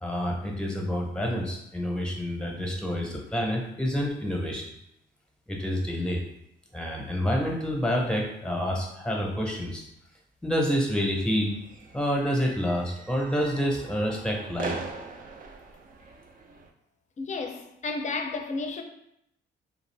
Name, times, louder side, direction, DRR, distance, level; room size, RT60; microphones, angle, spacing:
voice 1, 0.0-4.6 5.5-6.2 6.7-9.8 10.4-11.5 11.9-14.8, equal, 5° left, 0.7 m, -28 dB
sound 1, 11.4-16.7, right 4 dB, 45° right, 0.4 m, -41 dB
voice 2, 17.2-18.8, left 3 dB, 35° left, 0.5 m, -32 dB
2.5 x 2.4 x 3.2 m
cardioid pair, 90°, 20 cm